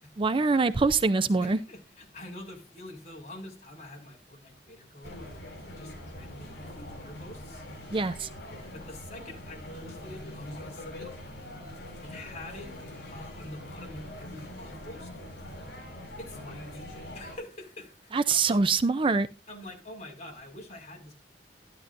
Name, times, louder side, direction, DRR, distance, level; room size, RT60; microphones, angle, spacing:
voice 1, 0.2-1.6 7.9-8.3 18.1-19.3, right 4 dB, 30° right, 0.4 m, -24 dB
voice 2, 1.4-5.2 5.8-7.7 8.7-11.1 12.0-12.8 13.1-15.1 16.2-16.8 17.1-18.6 19.5-21.2, left 1 dB, 40° left, 5.3 m, -46 dB
sound 1, 5.0-17.4, left 1 dB, 60° left, 7.9 m, -43 dB
13.0 x 11.5 x 2.6 m
head